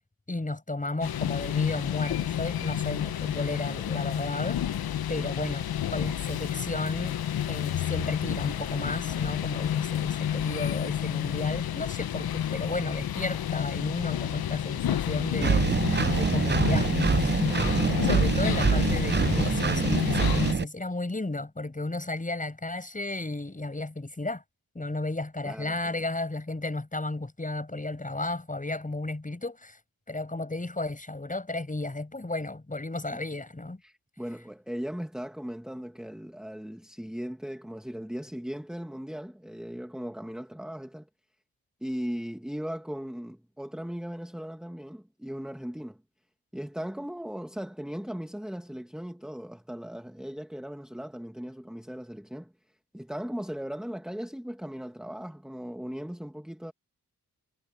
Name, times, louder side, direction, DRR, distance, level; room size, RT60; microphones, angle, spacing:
voice 1, 0.3-4.6 5.1-7.2 7.5-15.6 16.2-24.4 24.7-29.8 30.1-33.8, left 2 dB, 20° left, 6.5 m, -33 dB
sound 1, 1.0-20.5, left 10 dB, 75° left, 1.2 m, -30 dB
Engine, 15.4-20.6, right 5 dB, 30° right, 0.8 m, -25 dB
voice 2, 25.4-26.1 33.1-33.2 33.8-41.1 41.8-46.0 46.5-56.7, equal, ahead, 2.2 m, -38 dB
cardioid pair, 55°, 37 cm